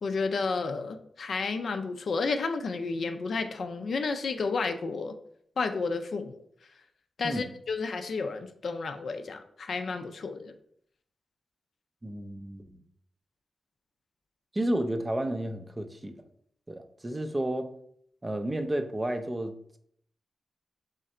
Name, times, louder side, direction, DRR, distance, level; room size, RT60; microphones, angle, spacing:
voice 1, 0.0-5.1 5.6-6.4 7.2-10.5, left 4 dB, 65° left, 7 dB, 0.4 m, -31 dB
voice 2, 12.0-12.8 14.5-16.2 16.7-17.7 18.2-19.8, right 1 dB, 20° right, 8 dB, 0.4 m, -32 dB
3.8 x 3.2 x 4.2 m, 0.68 s
wide cardioid pair, 130°, 0 cm